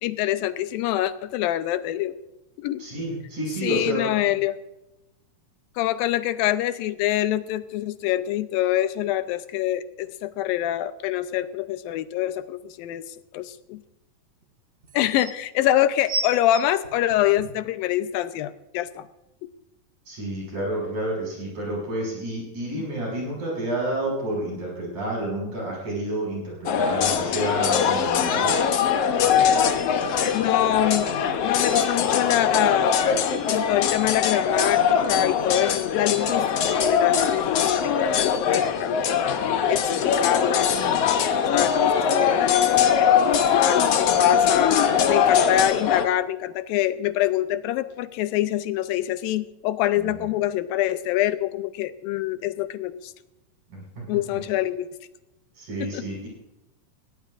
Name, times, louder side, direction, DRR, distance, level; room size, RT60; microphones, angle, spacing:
voice 1, 0.0-2.2 2.6-2.9 3.6-4.6 5.8-13.8 14.9-19.1 22.6-22.8 30.3-31.1 31.4-33.0 33.4-39.4 39.7-41.2 41.5-44.8 45.1-53.1 54.1-54.9 55.8-56.1, left 13 dB, 85° left, 12 dB, 2.5 m, -25 dB
voice 2, 2.8-4.1 20.1-28.6 50.0-50.3 53.7-53.8 54.3-54.4 55.6-56.3, right 1 dB, 60° right, -3 dB, 7.6 m, -30 dB
sound 1, 12.7-12.8 14.4-14.5 14.8-15.3 16.0-17.7 18.4-18.5, right 2 dB, 25° right, 3.2 m, -31 dB
sound 2, 26.7-46.1, left 7 dB, 65° left, 1.6 m, -22 dB
21.0 x 17.5 x 2.5 m, 0.94 s
omnidirectional pair, 4.0 m